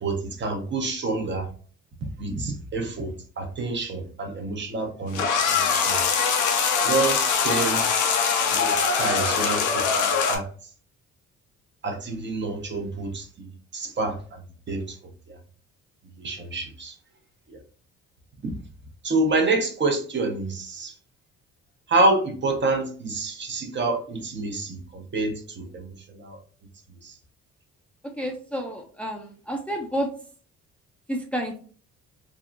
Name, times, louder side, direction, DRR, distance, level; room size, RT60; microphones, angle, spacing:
voice 1, 0.0-1.5 2.0-5.3 5.5-6.0 6.8-7.8 8.5-10.5 11.8-14.2 14.7-14.8 16.2-16.9 17.5-17.6 18.4-18.5 19.0-20.9 21.9-26.4 27.0-27.1, right 2 dB, 40° right, 0.8 m, -27 dB
sound 1, 5.1-10.4, left 6 dB, 75° left, 0.7 m, -22 dB
voice 2, 28.2-30.1 31.1-31.6, equal, 5° left, 0.5 m, -30 dB
3.7 x 2.1 x 2.3 m
cardioid pair, 90°, 30 cm